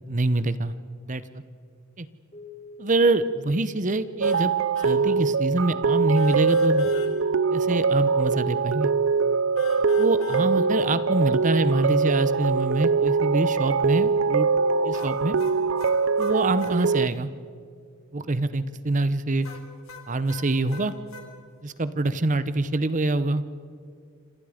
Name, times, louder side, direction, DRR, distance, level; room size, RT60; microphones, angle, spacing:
voice 1, 0.1-0.7 1.1-1.2 2.0-2.1 2.8-4.5 4.8-6.9 7.5-8.9 10.0-14.5 14.8-15.4 16.2-17.3 18.1-19.5 20.1-20.9 21.6-23.4, right 2 dB, 35° right, 14 dB, 0.8 m, -25 dB
Keyboard (musical), 2.3-5.3, left 2 dB, 30° left, 6.5 m, -49 dB
sound 1, 4.2-4.5 4.7-5.0 6.1-7.1 9.6-10.5 14.9-16.8 19.4-21.3, left 5 dB, 75° left, 3.2 m, -43 dB
sound 2, 4.2-17.1, right 5 dB, 65° right, 0.6 m, -23 dB
28.0 x 27.0 x 5.1 m, 2.2 s
head